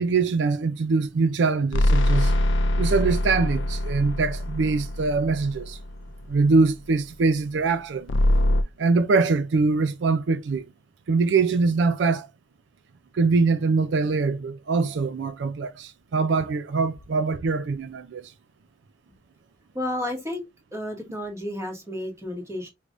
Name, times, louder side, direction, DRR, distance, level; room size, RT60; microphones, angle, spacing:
voice 1, 0.0-2.3 2.8-5.8 6.3-8.1 8.8-10.7 11.1-12.3 13.1-18.3, right 4 dB, 70° right, 0.4 m, -23 dB
sound 1, 1.7-6.2 8.1-8.6, left 1 dB, 85° left, 0.5 m, -23 dB
voice 2, 19.7-20.4 20.7-22.7, left 1 dB, 15° right, 1.5 m, -31 dB
5.0 x 3.3 x 2.5 m
head